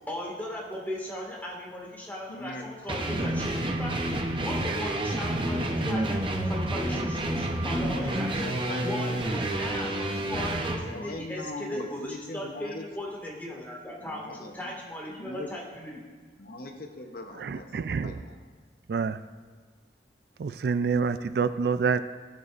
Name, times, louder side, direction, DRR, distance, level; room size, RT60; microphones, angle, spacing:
voice 1, 0.0-4.2 4.5-8.5 8.8-16.0, left 1 dB, 10° left, -3 dB, 1.9 m, -37 dB
voice 2, 2.3-3.0 7.6-9.3 9.8-10.0 10.9-12.8 14.1-14.8 15.1-15.5 16.4-18.4, left 2 dB, 55° left, 4 dB, 0.8 m, -41 dB
sound 1, 2.9-10.8, right 1 dB, 30° right, 0.7 m, -29 dB
voice 3, 17.4-18.2 18.9-19.2 20.4-22.0, right 5 dB, 60° right, 12 dB, 0.3 m, -27 dB
16.5 x 8.1 x 2.5 m, 1.5 s
head